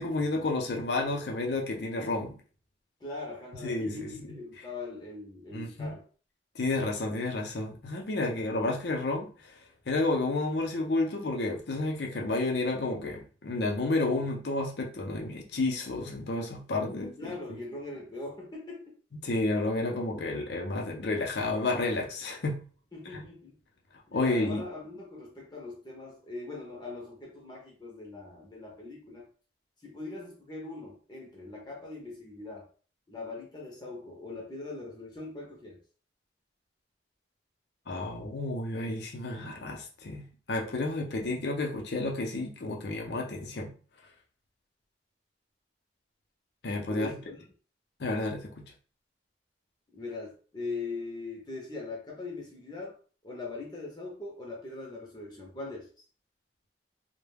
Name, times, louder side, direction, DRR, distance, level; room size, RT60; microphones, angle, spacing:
voice 1, 0.0-2.4 3.6-4.4 5.5-5.9 6.5-9.5 9.9-17.3 19.2-22.6 23.1-23.2 24.1-24.6 37.9-43.7 46.6-47.2 48.0-48.6, left 2 dB, 65° left, 1 dB, 0.6 m, -31 dB
voice 2, 3.0-6.0 17.2-18.9 22.9-23.5 24.0-29.3 29.8-32.7 33.1-35.8 46.9-47.4 49.9-53.0 53.2-55.9, left 3 dB, 25° left, -1 dB, 0.6 m, -41 dB
2.2 x 2.1 x 3.3 m, 0.39 s
head